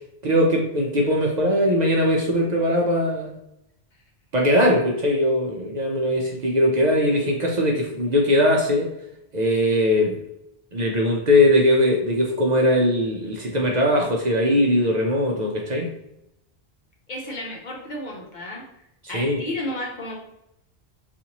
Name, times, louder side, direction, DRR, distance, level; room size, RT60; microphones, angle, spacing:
voice 1, 0.2-3.3 4.3-8.9 9.3-10.2 10.7-15.9 19.1-19.4, left 1 dB, 50° right, -1 dB, 0.6 m, -20 dB
voice 2, 17.1-18.7 19.1-20.2, left 1 dB, 50° left, -1 dB, 0.8 m, -32 dB
4.1 x 2.5 x 2.8 m, 0.81 s
omnidirectional pair, 1.1 m